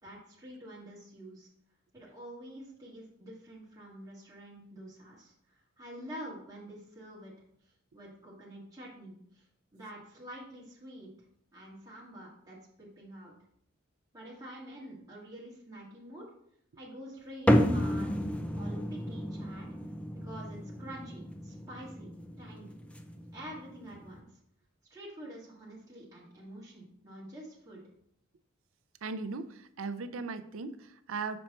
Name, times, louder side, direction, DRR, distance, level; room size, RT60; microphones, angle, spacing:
voice 1, 0.0-1.5 1.9-7.3 7.9-9.4 9.7-11.1 11.5-13.3 14.1-16.3 16.8-18.1 18.5-19.7 20.1-22.1 22.4-22.7 23.3-24.3 24.9-27.8, right 1 dB, 20° right, -7 dB, 1.9 m, -47 dB
sound 1, 17.5-24.2, equal, 5° left, 0.5 m, -32 dB
voice 2, 29.0-31.4, right 4 dB, 85° right, 10 dB, 0.5 m, -38 dB
6.3 x 4.4 x 4.3 m, 0.68 s
head